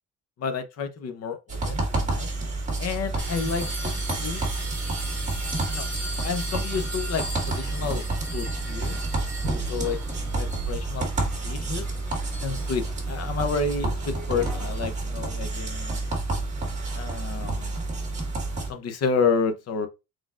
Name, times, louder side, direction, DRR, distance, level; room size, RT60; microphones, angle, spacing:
voice 1, 0.4-2.3 2.8-4.4 5.3-5.4 5.7-8.0 8.3-9.0 9.7-11.1 11.4-11.9 12.4-16.0 16.9-18.0 18.7-19.9, left 5 dB, 45° left, 0.7 m, -30 dB
sound 1, 1.5-18.7, right 2 dB, 20° right, 1.7 m, -29 dB
sound 2, 3.2-14.8, right 2 dB, 5° left, 1.6 m, -37 dB
4.6 x 4.2 x 2.4 m
cardioid pair, 180°, 34 cm